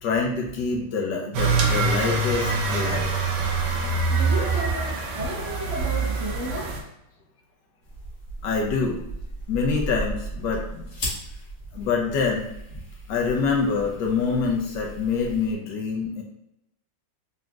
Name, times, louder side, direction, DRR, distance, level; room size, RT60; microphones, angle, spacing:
voice 1, 0.0-3.1 8.4-9.0 9.5-10.9 11.7-12.5 13.1-16.2, left 5 dB, 75° left, 0 dB, 1.2 m, -26 dB
sound 1, 1.3-6.8, right 4 dB, 70° right, 1.2 m, -24 dB
voice 2, 4.1-6.9, equal, 45° right, -6 dB, 1.2 m, -33 dB
sound 2, 7.8-15.5, right 1 dB, 50° left, 1.4 m, -36 dB
3.9 x 3.6 x 2.3 m, 0.82 s
omnidirectional pair, 2.1 m